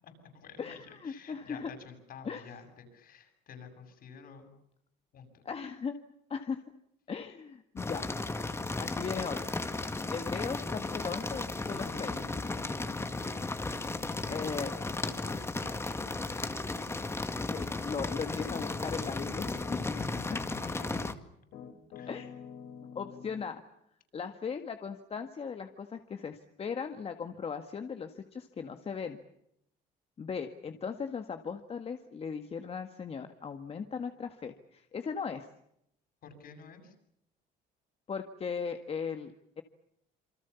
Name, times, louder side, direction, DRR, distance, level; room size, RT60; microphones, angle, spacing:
voice 1, 0.0-4.5 5.1-5.4 14.0-16.7 19.9-21.1 21.9-22.2 36.2-36.9, left 5 dB, 60° left, 7 dB, 8.0 m, -50 dB
voice 2, 0.6-1.7 2.2-2.5 5.5-5.9 6.3-6.6 7.1-8.1 8.8-9.6 10.1-12.2 14.3-14.7 17.4-19.8 22.1-22.3 23.0-23.6 24.1-29.2 30.2-35.5 38.1-39.6, left 6 dB, 35° left, 7 dB, 1.8 m, -38 dB
sound 1, 7.8-21.1, left 2 dB, 15° left, 2.0 m, -35 dB
Piano, 11.7-21.1 21.5-23.5, left 6 dB, 80° left, 4.5 m, -48 dB
28.0 x 24.5 x 7.1 m, 0.77 s
cardioid pair, 110°, 17 cm